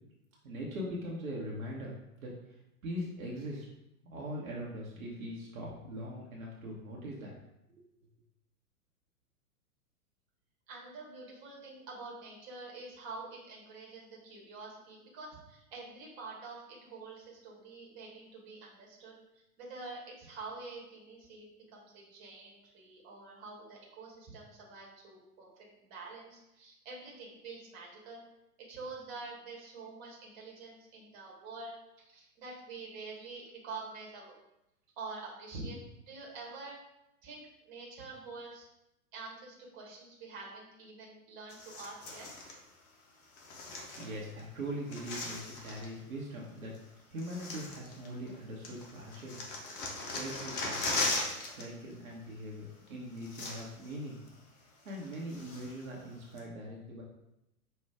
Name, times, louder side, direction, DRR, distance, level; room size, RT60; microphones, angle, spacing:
voice 1, 0.4-1.9 2.2-2.3 2.8-3.7 4.0-7.3 7.8-7.9 44.0-46.7 47.1-49.4 50.1-51.0 51.4-54.2 54.8-57.0, equal, 65° right, -3 dB, 1.0 m, -41 dB
voice 2, 10.7-28.2 28.7-34.3 35.0-36.8 37.2-38.7 39.1-42.3, right 3 dB, 35° right, -2 dB, 1.3 m, -47 dB
sound 1, 41.5-42.6 43.3-44.4 44.7-45.9 46.7-46.8 47.2-48.4 48.6-51.7 51.9-52.1 52.9-53.0 53.2-53.9 54.3-54.4 54.9-55.8 56.4-56.5, left 2 dB, 20° left, 0.5 m, -38 dB
5.4 x 2.4 x 3.4 m, 0.87 s
figure-of-eight pair, 105°, 45 cm